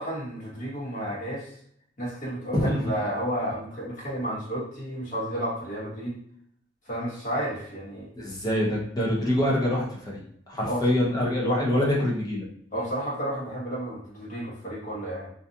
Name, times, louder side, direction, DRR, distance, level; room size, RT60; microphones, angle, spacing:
voice 1, 0.0-1.5 2.0-6.2 6.8-8.1 10.7-10.8 12.7-15.3, equal, 40° left, -5 dB, 1.0 m, -32 dB
voice 2, 8.2-10.2 10.5-12.5, left 1 dB, 20° left, -4 dB, 0.6 m, -25 dB
2.5 x 2.3 x 2.6 m, 0.67 s
head